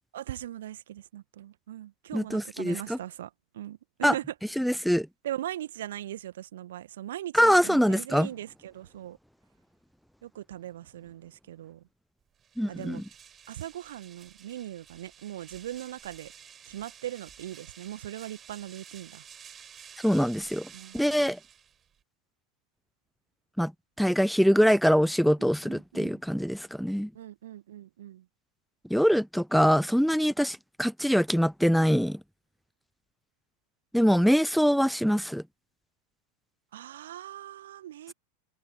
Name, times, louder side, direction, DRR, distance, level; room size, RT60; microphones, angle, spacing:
voice 1, 0.1-4.3 5.2-9.2 10.2-11.8 12.7-13.0 13.5-16.3 16.7-19.2 20.7-21.2 25.4-26.2 27.1-28.3 36.7-38.1, right 12 dB, 60° right, 1.8 m, -40 dB
voice 2, 2.1-3.0 4.0-4.1 4.6-5.1 7.3-8.3 12.6-13.0 20.0-20.7 20.9-21.4 23.6-23.7 24.0-27.1 28.9-32.2 33.9-35.4, equal, ahead, 0.7 m, -23 dB
sound 1, 12.3-22.0, right 8 dB, 25° right, 4.4 m, -51 dB
figure-of-eight pair, 90°, 0 cm